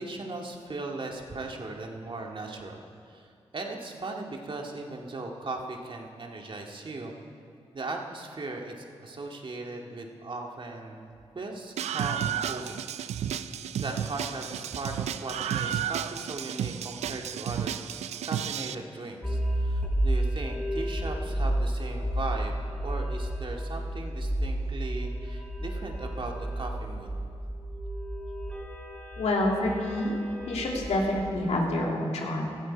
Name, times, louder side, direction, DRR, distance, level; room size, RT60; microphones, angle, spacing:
voice 1, 0.0-2.7 3.0-3.3 3.5-7.1 7.7-11.1 11.4-12.8 13.8-17.7 18.2-27.1, right 2 dB, 50° right, 1 dB, 2.1 m, -38 dB
Screaming, 11.8-18.7, right 9 dB, 85° right, 0.4 m, -32 dB
sound 1, 19.2-31.5, right 1 dB, 10° left, 4.2 m, -31 dB
voice 2, 29.2-30.2 30.5-32.6, left 1 dB, 80° left, -1 dB, 2.6 m, -27 dB
16.0 x 13.5 x 4.6 m, 2.4 s
cardioid pair, 50°, 11 cm